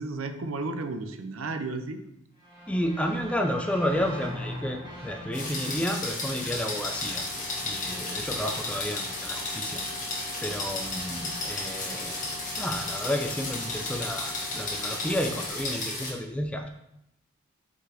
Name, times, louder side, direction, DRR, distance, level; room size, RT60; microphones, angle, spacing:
voice 1, 0.0-2.0, right 3 dB, 70° right, 8 dB, 0.6 m, -33 dB
sound 1, 2.4-7.4, left 1 dB, 25° right, 1.8 m, -42 dB
voice 2, 2.7-7.3 7.6-9.8 10.4-12.2 12.6-16.7, equal, 5° left, 4 dB, 0.4 m, -31 dB
sound 2, 5.3-16.1, left 2 dB, 40° left, 1.6 m, -33 dB
sound 3, 6.8-15.5, left 1 dB, 85° left, 1.2 m, -45 dB
5.3 x 4.0 x 4.9 m, 0.81 s
head